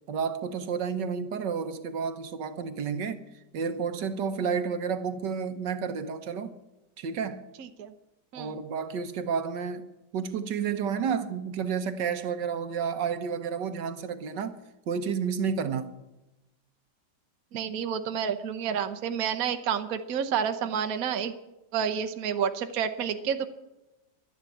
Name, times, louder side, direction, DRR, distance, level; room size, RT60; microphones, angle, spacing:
voice 1, 0.1-3.3 3.5-6.5 7.0-7.4 8.3-9.9 10.1-14.6 14.9-15.9, right 6 dB, 75° right, 1.6 m, -31 dB
voice 2, 7.6-7.9 8.3-8.6 17.5-21.3 21.7-23.5, right 8 dB, 55° right, 1.3 m, -29 dB
12.0 x 10.5 x 8.5 m
omnidirectional pair, 1.9 m